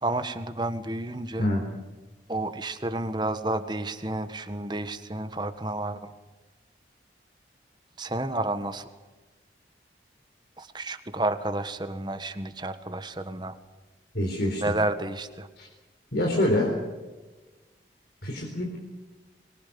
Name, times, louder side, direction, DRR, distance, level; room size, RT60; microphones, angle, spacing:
voice 1, 0.0-1.5 2.3-6.0 8.0-8.9 10.6-13.6 14.6-15.5, right 2 dB, 25° right, 9 dB, 1.5 m, -30 dB
voice 2, 14.1-14.7 15.6-15.7 16.1-16.8 18.2-18.8, left 1 dB, 65° left, 0 dB, 4.0 m, -26 dB
24.5 x 22.5 x 7.0 m, 1.2 s
head